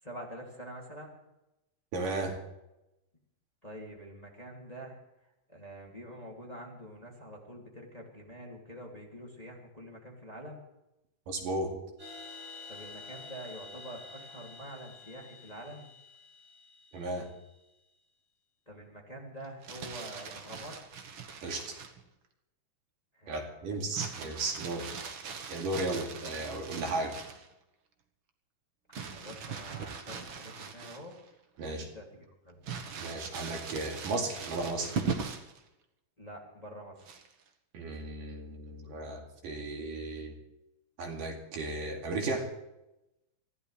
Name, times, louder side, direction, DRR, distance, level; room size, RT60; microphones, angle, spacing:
voice 1, 0.0-1.2 3.6-5.0 5.5-10.6 12.7-15.8 18.7-20.8 23.1-23.4 28.9-31.1 31.9-32.6 36.2-37.0, equal, 10° left, -1 dB, 2.5 m, -46 dB
voice 2, 1.9-2.4 11.3-11.7 16.9-17.3 21.4-21.8 23.3-24.9 25.5-27.1 31.6-31.9 33.0-34.9 37.7-40.3 41.0-42.5, right 2 dB, 75° right, 1 dB, 4.0 m, -35 dB
sound 1, 12.0-17.6, left 3 dB, 35° right, 8.4 m, -49 dB
Crumpling crinkling, 19.4-22.0 23.9-27.5 28.9-31.3 31.7-31.8 32.6-35.6 37.0-37.5, right 5 dB, 55° right, 1.5 m, -40 dB
24.5 x 15.5 x 3.4 m, 0.92 s
omnidirectional pair, 3.9 m